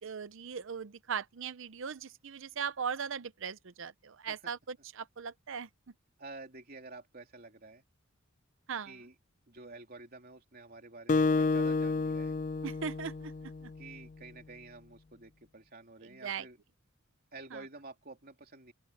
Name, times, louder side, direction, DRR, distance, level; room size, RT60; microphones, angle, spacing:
voice 1, 0.0-5.7 8.7-8.9 12.6-13.3 13.6-13.7 16.2-16.4 17.5-17.6, right 6 dB, 60° right, 0.6 m, -39 dB
voice 2, 6.2-7.8 8.8-9.2 9.5-12.4 13.8-16.6 17.3-18.7, right 3 dB, 45° right, 3.3 m, -50 dB
Acoustic guitar, 11.1-13.9, left 3 dB, 35° left, 0.4 m, -30 dB
open air
head